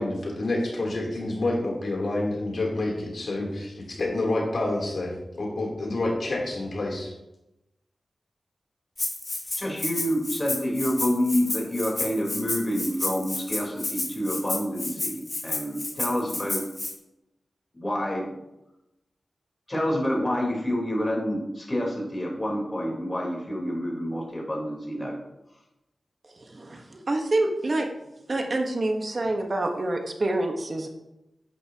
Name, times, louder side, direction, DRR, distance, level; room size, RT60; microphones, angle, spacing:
voice 1, 0.0-7.1, left 2 dB, 65° left, -2 dB, 3.1 m, -28 dB
Rattle (instrument), 9.0-16.9, left 2 dB, 40° left, 1.8 m, -31 dB
voice 2, 9.6-16.6 17.7-18.3 19.7-25.1, equal, 25° left, -2 dB, 3.6 m, -28 dB
voice 3, 26.3-27.9 28.3-30.9, right 2 dB, 45° right, 3 dB, 1.1 m, -27 dB
11.0 x 9.4 x 2.9 m, 0.91 s
wide cardioid pair, 85°, 0 cm